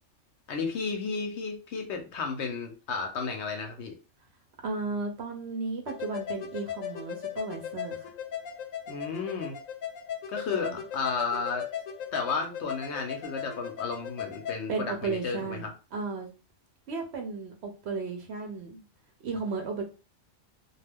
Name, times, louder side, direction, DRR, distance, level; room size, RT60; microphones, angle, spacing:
voice 1, 0.5-3.9 8.9-9.5 10.3-11.6 12.1-15.7, left 4 dB, 65° left, 4 dB, 0.8 m, -33 dB
voice 2, 4.6-8.1 10.5-10.8 14.7-16.3 16.9-18.8 19.2-19.8, right 4 dB, 60° right, 4 dB, 0.8 m, -34 dB
sound 1, 5.9-14.6, left 9 dB, 90° left, 1.0 m, -37 dB
2.4 x 2.2 x 3.3 m, 0.33 s
omnidirectional pair, 1.4 m